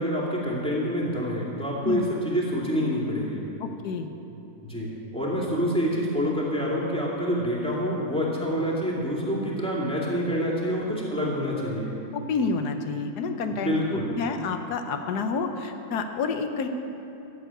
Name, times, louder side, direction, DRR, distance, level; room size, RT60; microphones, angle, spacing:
voice 1, 0.0-3.4 4.6-11.9 13.6-14.2, equal, 5° left, -5 dB, 2.6 m, -27 dB
voice 2, 3.6-4.1 12.1-16.7, left 4 dB, 90° left, 6 dB, 1.4 m, -29 dB
13.5 x 7.4 x 8.9 m, 2.9 s
omnidirectional pair, 1.7 m